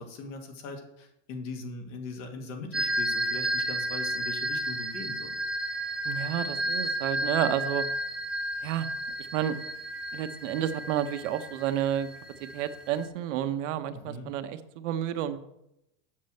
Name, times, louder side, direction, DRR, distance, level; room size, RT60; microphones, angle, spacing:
voice 1, 0.0-5.4 13.9-14.3, left 3 dB, 65° left, 4 dB, 2.3 m, -40 dB
sound 1, 2.7-13.1, right 1 dB, ahead, 0.7 m, -32 dB
voice 2, 6.0-7.9 8.6-8.9 9.2-9.6 10.1-12.1 12.4-15.4, right 10 dB, 70° right, 9 dB, 1.0 m, -30 dB
7.6 x 6.6 x 7.6 m, 0.85 s
supercardioid pair, 170°, 39 cm